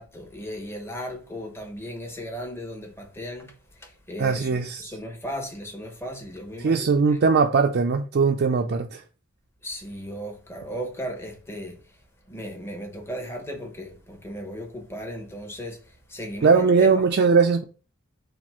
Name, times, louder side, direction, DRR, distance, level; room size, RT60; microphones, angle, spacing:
voice 1, 0.0-7.2 9.6-17.0, equal, 10° left, 0.9 m, -36 dB
voice 2, 4.2-4.8 6.6-9.0 16.4-17.6, right 5 dB, 50° right, 0.4 m, -20 dB
4.2 x 2.6 x 4.3 m
head